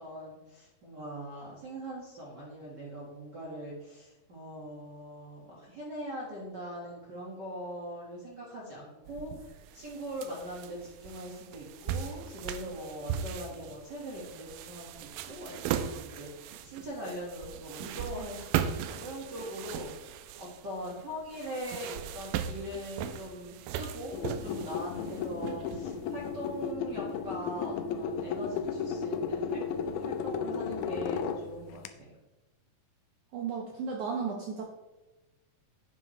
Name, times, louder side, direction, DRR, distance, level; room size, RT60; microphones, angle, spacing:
voice 1, 0.0-19.9 20.4-32.1, equal, 40° right, -5 dB, 1.6 m, -41 dB
sound 1, 9.1-26.5, right 9 dB, 85° right, 2.0 m, -38 dB
sound 2, 24.1-31.9, left 6 dB, 85° left, 1.7 m, -34 dB
voice 2, 33.3-34.7, right 5 dB, 70° right, 0 dB, 2.1 m, -34 dB
10.5 x 9.0 x 3.2 m, 1.1 s
omnidirectional pair, 4.3 m